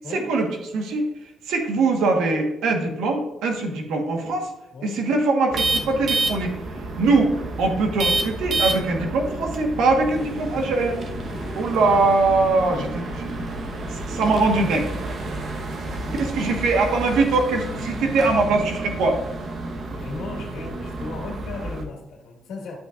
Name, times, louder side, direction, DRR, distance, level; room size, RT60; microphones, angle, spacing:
voice 1, 0.1-0.5 0.7-1.1 1.4-4.5 4.8-6.5 7.0-11.0 11.5-13.4 13.9-14.8 16.2-19.2, right 3 dB, 85° right, 2 dB, 1.3 m, -22 dB
sound 1, 5.5-21.8, right 2 dB, 55° right, 1.0 m, -30 dB
voice 2, 11.2-12.0 13.9-14.9 16.0-16.5 19.9-22.8, left 3 dB, 80° left, 0 dB, 1.7 m, -37 dB
12.0 x 5.8 x 2.5 m, 0.93 s
cardioid pair, 90°, 0 cm